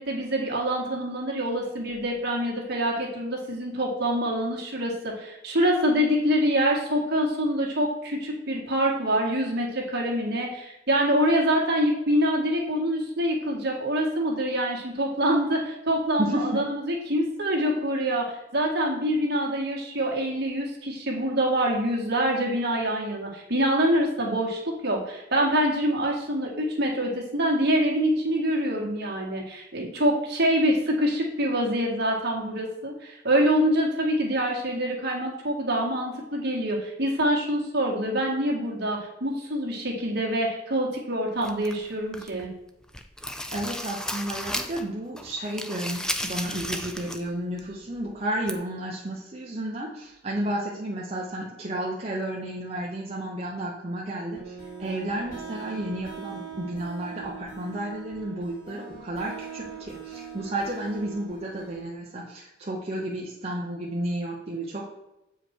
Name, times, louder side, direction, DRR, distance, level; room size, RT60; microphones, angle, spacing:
voice 1, 0.0-42.5, equal, 55° right, -1 dB, 1.9 m, -25 dB
voice 2, 16.2-16.6 43.5-64.9, right 1 dB, 30° right, -3 dB, 0.9 m, -32 dB
sound 1, 41.4-42.5 42.8-44.9 45.2-47.3 47.6-47.7 48.5-48.6, left 1 dB, 5° left, 0.4 m, -34 dB
sound 2, 54.3-61.9, right 6 dB, 45° left, 2.3 m, -41 dB
7.8 x 5.0 x 4.5 m, 0.94 s
head